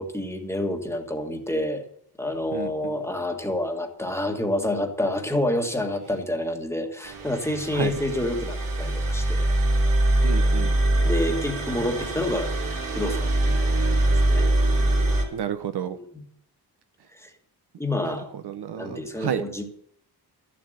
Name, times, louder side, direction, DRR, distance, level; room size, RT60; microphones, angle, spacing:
voice 1, 0.0-1.9 2.2-9.5 10.6-10.8 11.0-12.6 12.9-14.5 15.9-16.2 17.1-17.3 17.8-18.3 18.7-19.6, left 1 dB, 5° left, 1.5 m, -28 dB
voice 2, 2.5-3.0 7.7-7.9 10.2-10.7 15.3-16.0 18.4-19.4, right 8 dB, 80° right, 1.1 m, -30 dB
sound 1, 7.0-15.2, right 1 dB, 55° right, 3.2 m, -23 dB
13.5 x 7.5 x 7.9 m
wide cardioid pair, 175°, 39 cm